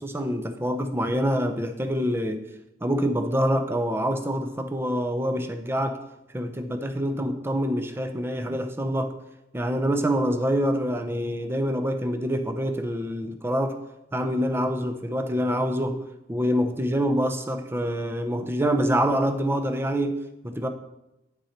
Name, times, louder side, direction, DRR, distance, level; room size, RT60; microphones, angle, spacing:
voice 1, 0.0-2.4 2.8-6.0 6.3-9.1 9.5-13.8 14.1-16.0 16.3-20.7, equal, 15° right, 7 dB, 0.7 m, -26 dB
9.5 x 6.1 x 4.3 m, 0.92 s
head